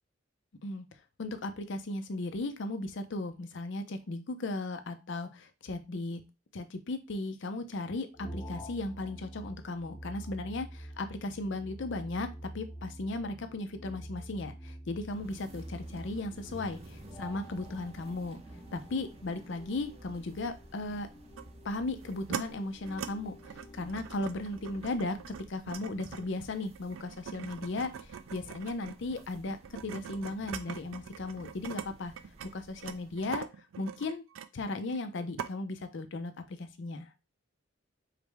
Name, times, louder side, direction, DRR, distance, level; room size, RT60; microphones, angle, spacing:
voice 1, 1.2-6.2 6.5-18.4 18.7-21.1 21.6-23.4 23.7-29.6 29.8-32.1 32.5-33.5 33.8-34.2 34.5-37.1, left 2 dB, 65° left, 8 dB, 0.5 m, -36 dB
sound 1, 8.1-25.5, right 1 dB, 25° left, 0.7 m, -48 dB
sound 2, 14.9-33.4, right 2 dB, 30° right, 0.6 m, -53 dB
sound 3, 21.4-21.5 22.0-22.4 22.8-23.1 23.4-31.9 32.2-35.1 35.4-35.5, right 7 dB, 85° right, 0.4 m, -42 dB
4.9 x 2.1 x 3.3 m, 0.27 s
head